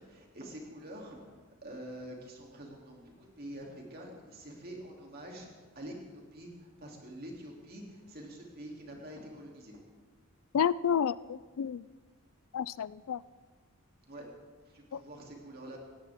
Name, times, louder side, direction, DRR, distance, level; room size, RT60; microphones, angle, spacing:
voice 1, 0.0-9.8 14.1-14.3 14.6-15.8, right 1 dB, 45° right, 0 dB, 2.9 m, -46 dB
voice 2, 10.5-11.9 12.5-13.2 14.9-15.0, left 8 dB, 75° left, 19 dB, 0.4 m, -30 dB
18.5 x 16.0 x 3.6 m, 1.4 s
head